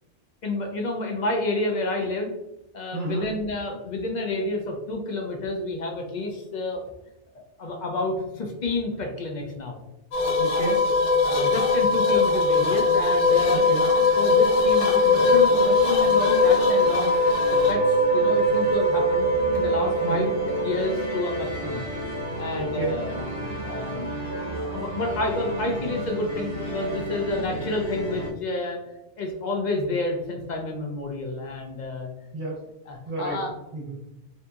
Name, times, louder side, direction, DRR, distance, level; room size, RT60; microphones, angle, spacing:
voice 1, 0.4-2.3 2.7-6.8 7.6-9.8 11.2-13.7 14.2-17.2 17.5-21.9 22.4-23.2 23.6-24.3 24.6-28.8 29.2-32.1 32.9-33.5, left 2 dB, 50° left, 2 dB, 0.6 m, -29 dB
voice 2, 2.9-3.3 10.4-10.8 13.5-13.9 20.0-20.3 22.6-23.0 32.3-32.6 33.1-33.4 33.7-34.0, right 2 dB, 50° right, -2 dB, 1.0 m, -30 dB
sound 1, 10.1-21.5, left 3 dB, 90° left, 1.0 m, -21 dB
sound 2, 13.0-28.3, equal, 70° left, 1.2 m, -33 dB
3.9 x 2.7 x 2.3 m, 0.95 s
omnidirectional pair, 1.2 m